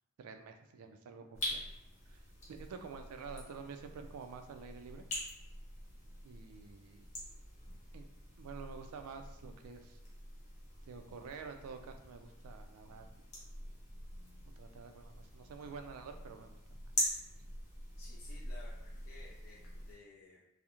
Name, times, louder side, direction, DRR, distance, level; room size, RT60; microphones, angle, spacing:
voice 1, 0.2-1.6 2.1-2.2 2.5-5.1 6.2-7.0 7.9-8.1 8.4-10.0 10.9-13.1 14.6-16.6, right 5 dB, 85° right, 6 dB, 0.3 m, -49 dB
sound 1, 1.3-20.0, left 1 dB, 30° left, 0.8 m, -44 dB
voice 2, 18.0-20.5, left 3 dB, 80° left, -4 dB, 0.4 m, -56 dB
2.4 x 2.0 x 2.9 m, 0.91 s
head